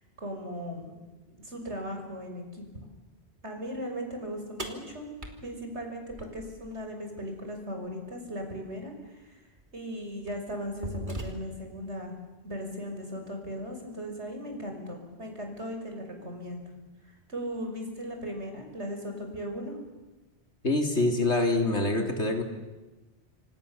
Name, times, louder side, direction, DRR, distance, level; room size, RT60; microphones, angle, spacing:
voice 1, 0.2-1.0 1.4-2.6 3.4-5.1 5.4-9.4 9.7-12.1 12.4-16.7 17.3-19.8, equal, 80° right, 3 dB, 6.3 m, -37 dB
sound 1, 4.6-6.8 8.6-8.7 9.6-9.8 10.3-11.8, equal, 45° right, 3.2 m, -40 dB
voice 2, 20.6-22.4, left 2 dB, 80° left, 3 dB, 3.8 m, -25 dB
29.0 x 27.0 x 7.2 m, 1.1 s
omnidirectional pair, 1.1 m